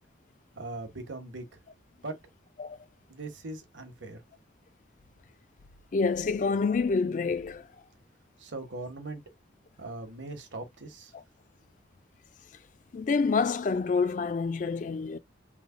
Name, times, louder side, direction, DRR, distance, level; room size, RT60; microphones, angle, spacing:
voice 1, 0.6-1.5 2.0-2.2 3.1-4.2 8.4-9.2 9.8-11.1, right 2 dB, 75° right, 1.1 m, -40 dB
voice 2, 5.9-7.7 11.1-11.2 12.9-15.2, left 4 dB, 40° left, 0.3 m, -27 dB
3.3 x 2.1 x 3.6 m
head